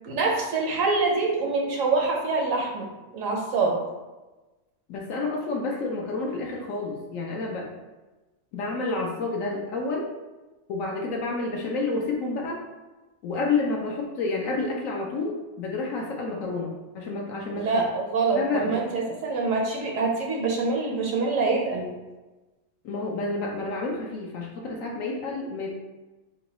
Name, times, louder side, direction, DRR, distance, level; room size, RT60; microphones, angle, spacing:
voice 1, 0.0-3.8 17.5-21.9, right 3 dB, 65° right, 0 dB, 0.9 m, -25 dB
voice 2, 4.9-7.7 8.5-10.1 10.7-12.6 13.2-17.7 18.3-18.8 22.8-25.7, left 3 dB, 65° left, 0 dB, 0.9 m, -29 dB
3.9 x 2.2 x 4.0 m, 1.1 s
omnidirectional pair, 1.6 m